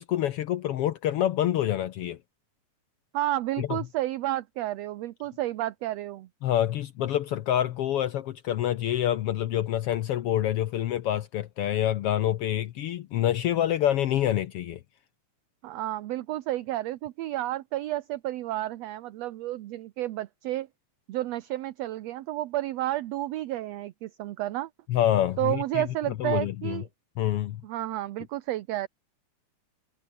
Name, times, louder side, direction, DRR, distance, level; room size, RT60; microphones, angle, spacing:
voice 1, 0.0-2.2 3.6-3.8 6.4-14.8 24.9-25.8 26.2-26.8 27.2-27.6, left 12 dB, 75° left, 1.4 m, -27 dB
voice 2, 3.1-6.3 15.6-20.7 21.1-24.7 25.4-26.9 27.6-28.9, right 15 dB, 70° right, 1.8 m, -31 dB
omnidirectional pair, 3.5 m